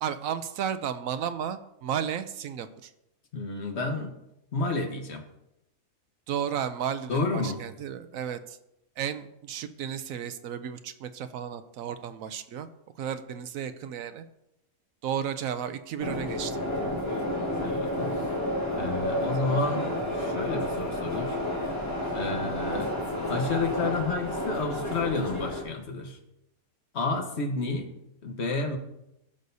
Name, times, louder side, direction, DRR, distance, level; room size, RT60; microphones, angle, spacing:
voice 1, 0.0-2.9 6.3-8.6 9.0-12.7 13.0-14.2 15.0-16.6, right 8 dB, 75° right, 11 dB, 1.0 m, -33 dB
voice 2, 3.3-4.1 4.5-5.2 7.1-7.6 17.6-18.1 18.7-19.9 20.2-21.3 22.1-22.9 23.3-26.2 26.9-27.9 28.2-28.8, left 3 dB, 50° left, 4 dB, 1.4 m, -30 dB
sound 1, 16.0-25.6, left 1 dB, 20° left, 1.8 m, -30 dB
15.5 x 6.4 x 2.7 m, 0.85 s
omnidirectional pair, 1.5 m